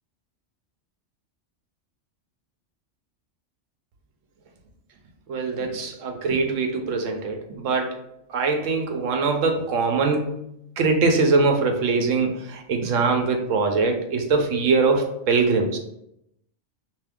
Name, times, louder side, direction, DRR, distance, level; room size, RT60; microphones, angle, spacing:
voice 1, 5.3-8.0 8.3-10.3 10.8-15.8, right 4 dB, 90° right, 4 dB, 1.0 m, -22 dB
3.4 x 2.9 x 3.5 m, 0.79 s
omnidirectional pair, 1.2 m